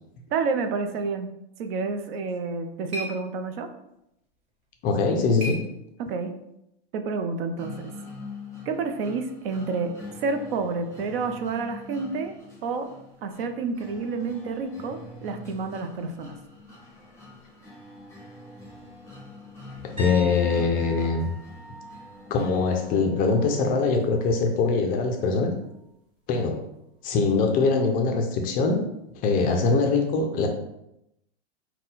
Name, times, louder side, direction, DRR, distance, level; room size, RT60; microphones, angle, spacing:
voice 1, 0.3-1.3 1.6-3.7 6.0-6.3 6.9-7.9 8.7-9.9 10.2-12.3 12.6-12.9 13.2-16.4, right 4 dB, 65° right, 6 dB, 0.6 m, -29 dB
sound 1, 2.2-6.4, left 1 dB, 40° right, 1.1 m, -41 dB
voice 2, 4.8-5.6 19.8-21.3 22.3-25.5 26.3-26.6 27.0-28.8 29.2-30.5, left 4 dB, 25° left, 4 dB, 0.4 m, -23 dB
sound 2, 7.6-23.5, left 2 dB, 10° left, 1.0 m, -44 dB
sound 3, 20.0-23.7 24.0-24.4 27.3-27.4, right 2 dB, 15° right, 1.3 m, -42 dB
3.8 x 2.2 x 3.9 m, 0.83 s
hypercardioid pair, 130°, 33 cm